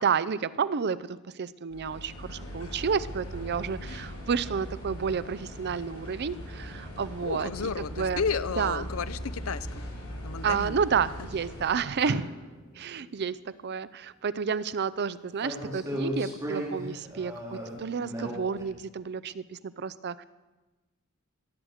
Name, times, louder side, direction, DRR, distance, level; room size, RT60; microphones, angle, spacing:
voice 1, 0.0-7.5 7.8-8.3 8.6-8.9 10.4-12.3 12.8-20.2, right 6 dB, 50° right, 16 dB, 0.5 m, -30 dB
sound 1, 1.7-11.8, equal, 85° left, 5.2 m, -40 dB
voice 2, 7.2-9.7 10.2-10.8, left 5 dB, 65° left, 15 dB, 0.6 m, -32 dB
sound 2, 12.0-13.0 15.4-18.6, equal, 15° right, 2.8 m, -36 dB
17.5 x 9.3 x 6.5 m, 1.2 s
head